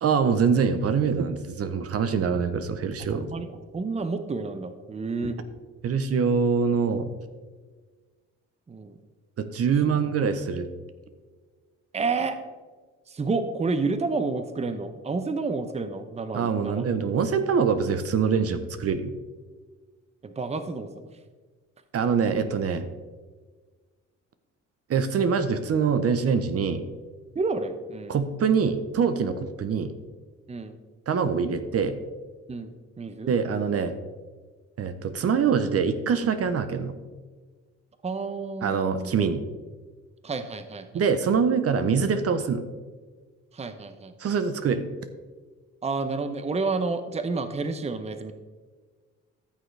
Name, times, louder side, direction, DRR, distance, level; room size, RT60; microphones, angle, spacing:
voice 1, 0.0-3.3 5.8-7.1 9.4-10.7 16.3-19.1 21.9-22.9 24.9-26.8 28.1-29.9 31.1-32.0 33.3-33.9 34.8-36.9 38.6-39.4 40.9-42.6 44.2-44.8, right 6 dB, 50° right, 10 dB, 0.8 m, -24 dB
voice 2, 3.1-5.4 8.7-9.0 9.8-9.9 11.9-12.4 13.1-16.9 20.2-21.1 27.3-28.2 30.5-30.8 32.5-33.3 38.0-39.1 40.2-41.0 43.5-44.1 45.8-48.3, right 3 dB, 20° right, 9 dB, 0.7 m, -30 dB
14.0 x 6.5 x 3.3 m, 1.4 s
cardioid pair, 90°, 30 cm